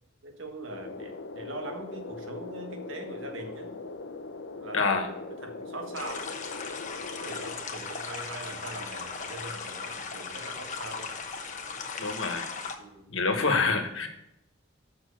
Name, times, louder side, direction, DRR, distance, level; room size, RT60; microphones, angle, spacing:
voice 1, 0.2-3.7 4.6-6.3 7.1-11.1 12.8-13.1, right 2 dB, 80° right, 4 dB, 1.6 m, -41 dB
sound 1, 0.7-7.5, left 3 dB, 65° left, 0.7 m, -41 dB
voice 2, 4.7-5.1 12.0-12.5 13.1-14.1, left 4 dB, 85° left, 5 dB, 1.5 m, -26 dB
sound 2, 5.9-12.7, left 5 dB, 40° left, 1.0 m, -37 dB
6.9 x 5.8 x 6.6 m, 0.83 s
head